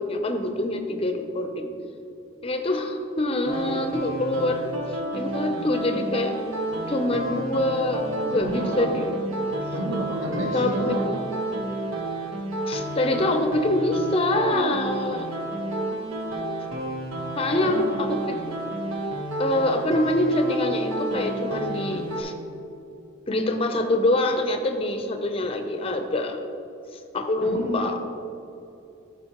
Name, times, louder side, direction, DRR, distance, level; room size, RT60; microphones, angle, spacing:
voice 1, 0.0-1.7 2.4-6.4 6.8-9.1 10.5-11.0 12.7-15.3 17.4-18.4 19.4-22.3 23.3-26.4 27.1-28.0, left 1 dB, 25° left, 6 dB, 0.5 m, -25 dB
sound 1, 3.5-22.2, right 1 dB, 80° right, 1.1 m, -31 dB
voice 2, 8.3-8.9 9.7-11.1 17.6-17.9 27.4-27.9, right 1 dB, 60° right, -2 dB, 1.2 m, -30 dB
12.5 x 5.1 x 2.9 m, 2.7 s
head